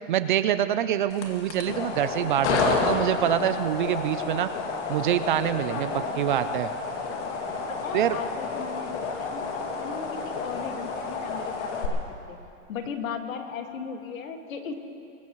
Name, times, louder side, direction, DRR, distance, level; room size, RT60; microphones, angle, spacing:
voice 1, 0.1-4.5 4.9-6.7 7.9-8.2, right 11 dB, 40° right, 12 dB, 0.4 m, -25 dB
sound 1, 1.1-11.9, left 4 dB, 60° left, 2.3 m, -30 dB
voice 2, 5.7-6.2 7.7-12.0 12.3-12.4 12.7-14.7, left 6 dB, 85° left, 4 dB, 2.0 m, -37 dB
23.5 x 18.5 x 3.1 m, 2.6 s
supercardioid pair, 165°, 39 cm